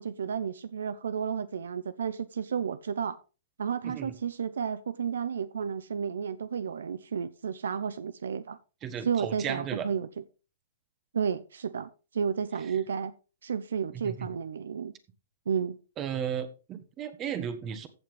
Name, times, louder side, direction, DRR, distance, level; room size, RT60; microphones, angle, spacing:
voice 1, 0.0-3.2 3.6-8.6 9.0-10.1 11.1-13.1 13.4-14.9 15.5-15.8, right 7 dB, 85° right, 0.7 m, -32 dB
voice 2, 8.8-9.9 13.9-14.3 16.0-17.9, right 8 dB, 25° right, 1.4 m, -35 dB
15.0 x 6.0 x 3.4 m
hypercardioid pair, 140°, 0 cm